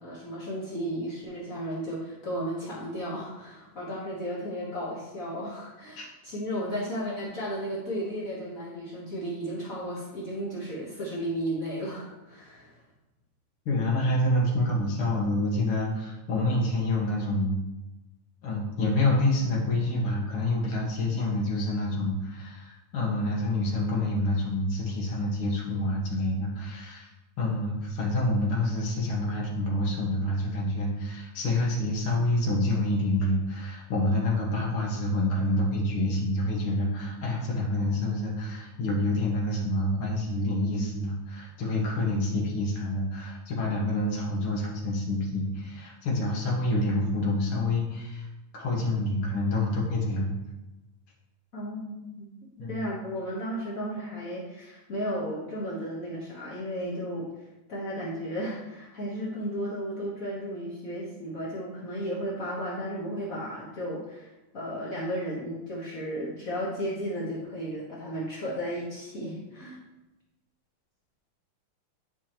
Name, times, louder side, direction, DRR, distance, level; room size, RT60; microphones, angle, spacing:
voice 1, 0.0-12.8 51.5-52.3 52.7-57.3 57.7-64.3 64.5-69.8, equal, 80° left, -6 dB, 0.7 m, -34 dB
voice 2, 13.7-17.6 18.4-48.3 48.5-50.3 52.6-52.8, left 1 dB, 50° left, -3 dB, 2.1 m, -27 dB
10.0 x 4.7 x 3.0 m, 1.0 s
omnidirectional pair, 3.5 m